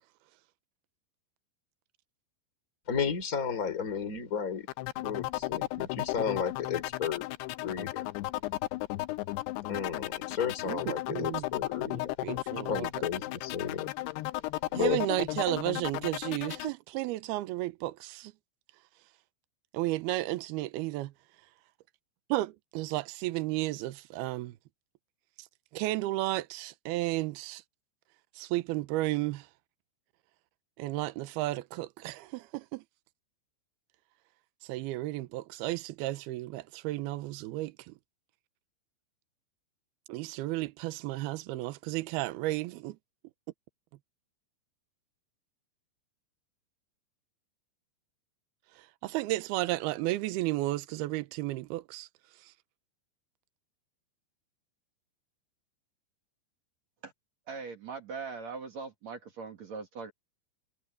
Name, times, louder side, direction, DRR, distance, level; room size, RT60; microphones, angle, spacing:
voice 1, 2.9-4.7 5.0-7.3 7.6-8.1 9.7-12.4 12.7-13.9 14.7-15.0, left 7 dB, 20° left, 3.6 m, -33 dB
sound 1, 4.7-16.7, left 18 dB, 85° left, 2.4 m, -35 dB
voice 2, 10.7-11.5 11.8-12.9 14.7-18.3 19.7-21.1 22.3-24.6 25.4-25.5 25.7-27.6 28.4-29.5 30.8-32.8 34.6-37.9 40.1-43.0 48.8-52.1 52.4-52.5, right 17 dB, 75° right, 2.4 m, -33 dB
voice 3, 57.5-60.1, right 5 dB, 45° right, 2.7 m, -41 dB
omnidirectional pair, 5.4 m